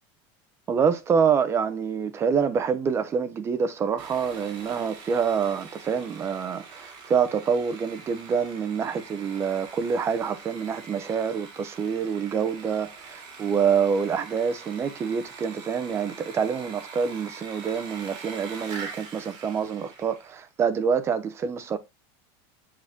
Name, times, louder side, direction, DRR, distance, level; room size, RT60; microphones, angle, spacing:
voice 1, 0.7-21.8, right 6 dB, 20° right, 0.9 m, -26 dB
Sawing, 4.0-20.4, right 4 dB, 35° right, 2.9 m, -44 dB
7.6 x 6.1 x 3.6 m
supercardioid pair, 175°, 14 cm